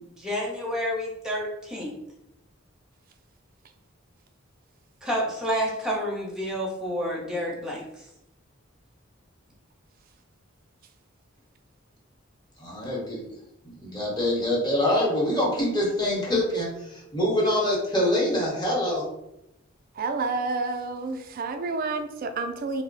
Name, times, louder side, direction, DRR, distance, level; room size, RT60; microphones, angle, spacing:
voice 1, 0.0-1.9 5.0-7.9, equal, 5° right, -3 dB, 0.7 m, -29 dB
voice 2, 12.6-13.2 13.8-19.1, left 1 dB, 20° left, -4 dB, 1.0 m, -25 dB
voice 3, 19.9-22.8, right 3 dB, 45° right, 7 dB, 0.3 m, -29 dB
2.7 x 2.1 x 3.9 m, 0.84 s
head